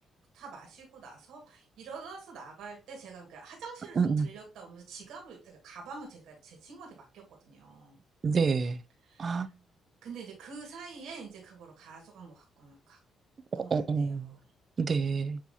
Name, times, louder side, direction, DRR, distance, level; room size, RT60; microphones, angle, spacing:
voice 1, 0.3-8.0 9.0-9.5 10.0-13.0 13.5-14.4, right 5 dB, 85° right, 1.7 m, -47 dB
voice 2, 4.0-4.3 8.2-8.8 9.2-9.5 13.5-14.3 14.8-15.4, right 5 dB, 45° right, 0.4 m, -28 dB
6.9 x 2.8 x 2.7 m
cardioid pair, 90°, 0 cm